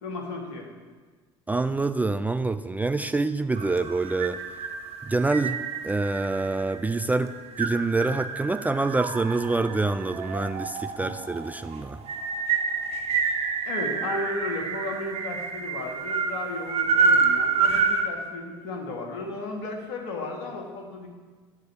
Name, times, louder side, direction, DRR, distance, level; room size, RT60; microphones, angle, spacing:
voice 1, 0.0-0.7 11.0-11.3 13.7-21.1, left 2 dB, 70° left, 3 dB, 1.3 m, -34 dB
voice 2, 1.5-4.4 5.0-5.6 5.8-12.0, right 3 dB, 10° right, 10 dB, 0.3 m, -26 dB
sound 1, 3.6-18.1, right 5 dB, 45° right, 0.8 m, -28 dB
8.1 x 3.9 x 6.9 m, 1.4 s
figure-of-eight pair, 60°, 14 cm